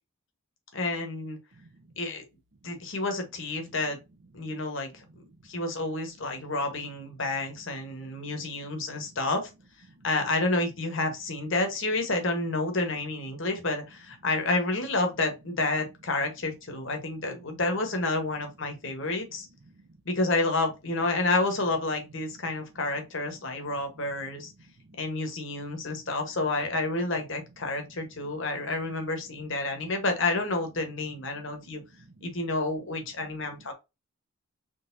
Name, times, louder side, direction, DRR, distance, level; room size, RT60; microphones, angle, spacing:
voice 1, 0.7-1.4 2.0-2.2 2.6-4.0 4.3-5.0 5.5-9.5 10.0-19.5 20.0-24.5 25.0-31.8 32.2-33.7, left 2 dB, 55° left, 1.2 m, -29 dB
voice 2, 1.6-1.9 2.7-2.8 4.4-4.5 5.0-5.3 7.9-8.0 8.3-9.2 9.9-10.1 18.8-19.1 19.6-19.8 23.4-23.5 24.8-25.0 27.8-28.6 31.3-32.3 33.5-33.7, right 2 dB, 50° right, 0.6 m, -56 dB
4.0 x 3.2 x 2.6 m
head